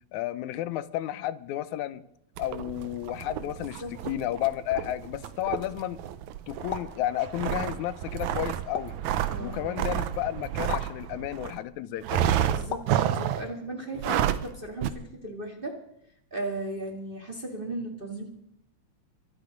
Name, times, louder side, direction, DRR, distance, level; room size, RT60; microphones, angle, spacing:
voice 1, 0.1-2.0 2.4-6.0 6.5-9.0 9.4-12.3, left 13 dB, 85° left, 2.1 m, -32 dB
sound 1, 2.4-11.6 12.0-13.5 13.9-14.5 14.8-14.9, right 11 dB, 85° right, 2.2 m, -30 dB
sound 2, 6.7-7.0 8.7-9.1 10.7-11.0 12.7-13.0, left 7 dB, 65° left, 1.1 m, -35 dB
voice 2, 9.3-9.8 12.5-14.9 15.2-15.8 16.3-18.3, right 1 dB, 20° right, 1.7 m, -36 dB
23.5 x 9.6 x 5.2 m
omnidirectional pair, 3.3 m